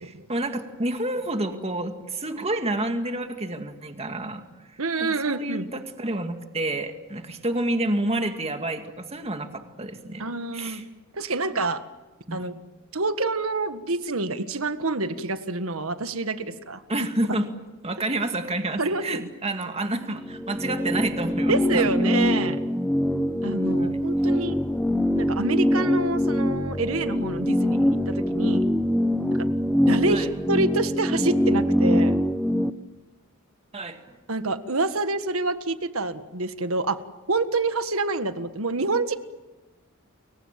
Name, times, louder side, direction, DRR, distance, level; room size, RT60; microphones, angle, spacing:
voice 1, 0.0-4.4 5.0-10.2 10.5-10.8 12.3-12.5 16.9-17.5 17.8-21.8 23.8-23.9 24.2-24.3 30.1-30.3 33.7-34.2, right 1 dB, 30° right, 6 dB, 2.2 m, -29 dB
voice 2, 4.8-5.7 10.2-10.8 11.1-11.8 12.3-12.6 12.9-17.3 18.8-19.3 21.5-22.6 23.4-24.6 25.2-28.7 29.3-29.5 29.9-32.2 34.3-37.0 37.3-39.2, right 3 dB, 75° right, 10 dB, 1.6 m, -27 dB
sound 1, 20.2-32.7, equal, 5° left, 0.8 m, -23 dB
30.0 x 23.0 x 7.5 m, 1.2 s
head